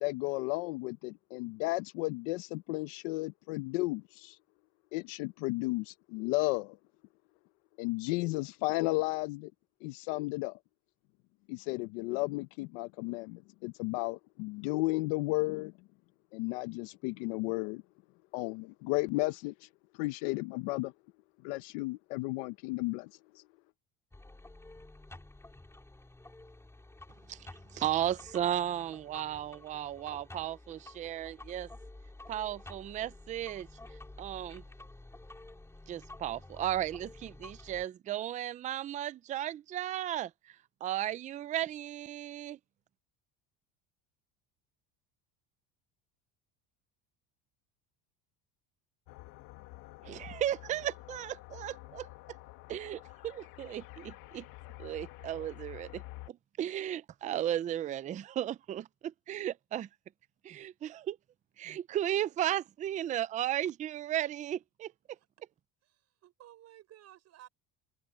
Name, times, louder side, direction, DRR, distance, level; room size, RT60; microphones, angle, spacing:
voice 1, 0.0-4.4 4.9-6.8 7.8-9.5 9.8-10.6 11.5-15.7 16.3-17.8 18.3-19.7 19.9-20.9 21.4-23.1 23.3-23.4, left 22 dB, 80° left, 0.9 m, -33 dB
sound 1, 24.1-37.8, left 2 dB, 5° left, 3.8 m, -51 dB
voice 2, 27.3-31.7 32.3-34.6 35.9-42.6 50.1-52.1 52.7-54.5 54.8-59.9 60.4-61.2 61.6-64.9, right 12 dB, 20° right, 0.4 m, -35 dB
sound 2, 49.1-56.3, left 18 dB, 60° left, 1.7 m, -49 dB
voice 3, 65.8-67.5, right 13 dB, 45° right, 6.1 m, -56 dB
cardioid pair, 145°, 37 cm